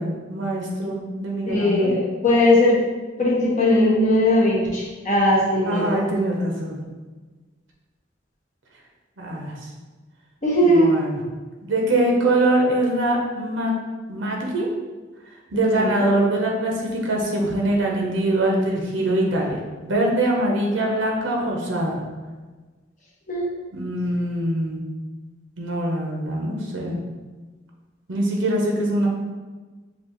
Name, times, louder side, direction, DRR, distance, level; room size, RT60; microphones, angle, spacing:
voice 1, 0.0-1.9 5.6-6.9 9.2-9.7 10.6-11.2 11.6-13.7 14.1-14.7 15.5-22.0 23.7-24.8 25.6-27.0 28.1-29.1, right 1 dB, 85° right, -1 dB, 0.7 m, -23 dB
voice 2, 1.5-2.8 3.2-6.0 10.4-10.9 15.5-16.0 23.3-23.5, left 1 dB, 40° left, -5 dB, 1.2 m, -19 dB
6.7 x 2.4 x 3.0 m, 1.3 s
head